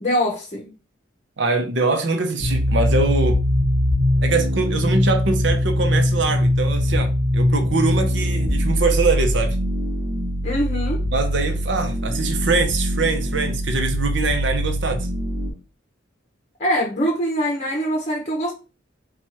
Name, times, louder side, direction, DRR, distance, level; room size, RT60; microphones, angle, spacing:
voice 1, 0.0-0.7 10.4-11.0 16.6-18.5, equal, 35° left, 0.9 m, -23 dB
voice 2, 1.4-3.4 4.2-9.6 11.1-15.1, right 3 dB, 65° right, 0.8 m, -23 dB
sound 1, 2.4-15.5, equal, 45° right, 1.1 m, -22 dB
4.5 x 2.4 x 4.3 m
head